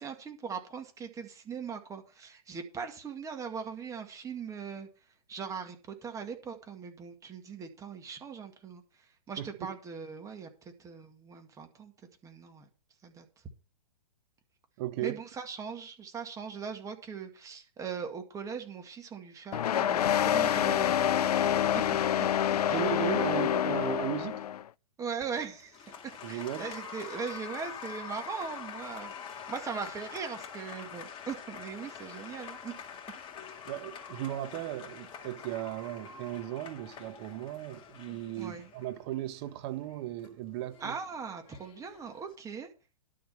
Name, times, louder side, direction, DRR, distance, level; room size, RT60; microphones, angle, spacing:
voice 1, 0.0-4.9 5.3-11.9 12.2-12.6 13.0-13.3 15.0-21.8 25.0-25.8 26.3-29.1 29.5-32.7 38.4-38.7 40.8-42.7, right 6 dB, 15° right, 2.0 m, -40 dB
voice 2, 9.4-9.7 14.8-15.2 22.7-24.4 26.2-26.7 33.6-41.0, right 14 dB, 40° right, 1.3 m, -36 dB
sound 1, 19.5-24.6, left 10 dB, 75° left, 0.5 m, -27 dB
Applause, 25.2-42.3, left 7 dB, 25° left, 2.1 m, -46 dB
11.5 x 7.4 x 5.5 m
hypercardioid pair, 130°, 20 cm